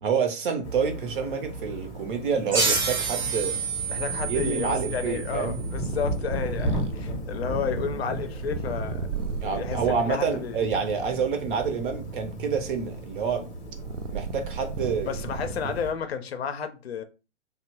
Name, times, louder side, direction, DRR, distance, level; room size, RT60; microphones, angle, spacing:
voice 1, 0.0-3.6 4.3-5.6 9.4-13.4 14.1-15.1 15.6-15.7, right 6 dB, 45° right, 0.7 m, -28 dB
sound 1, 0.6-15.9, right 1 dB, 25° left, 0.8 m, -35 dB
sound 2, 2.5-5.8, right 4 dB, 20° right, 0.4 m, -29 dB
Purr, 3.6-10.1 10.8-16.0, right 5 dB, 85° right, 0.5 m, -37 dB
voice 2, 3.9-9.1 9.4-10.6 15.1-17.0, left 7 dB, 60° left, 0.5 m, -32 dB
2.8 x 2.0 x 2.9 m
figure-of-eight pair, 120°, 35 cm